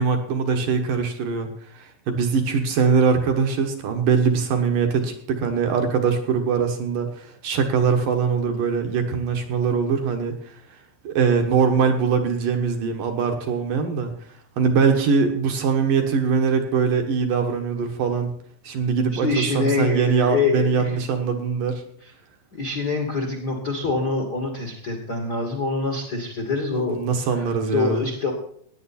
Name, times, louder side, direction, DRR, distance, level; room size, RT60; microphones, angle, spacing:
voice 1, 0.0-10.5 11.0-14.1 14.6-18.3 18.6-21.8 26.7-28.0, right 5 dB, 60° right, 4 dB, 2.5 m, -22 dB
voice 2, 19.1-21.0 22.5-27.0 27.3-28.3, left 3 dB, 45° left, 1 dB, 1.4 m, -25 dB
17.0 x 10.0 x 4.3 m, 0.62 s
omnidirectional pair, 5.0 m